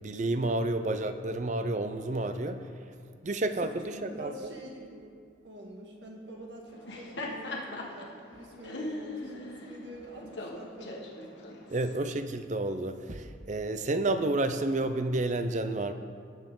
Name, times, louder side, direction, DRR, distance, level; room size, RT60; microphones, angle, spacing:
voice 1, 0.0-2.7 3.2-4.3 11.7-15.9, right 2 dB, 40° right, 10 dB, 0.6 m, -30 dB
voice 2, 3.5-5.1 5.4-11.6, right 1 dB, 65° right, -1 dB, 2.0 m, -46 dB
Laughter, 6.7-12.0, left 2 dB, 70° left, 1.5 m, -40 dB
18.5 x 7.7 x 3.8 m, 2.2 s
head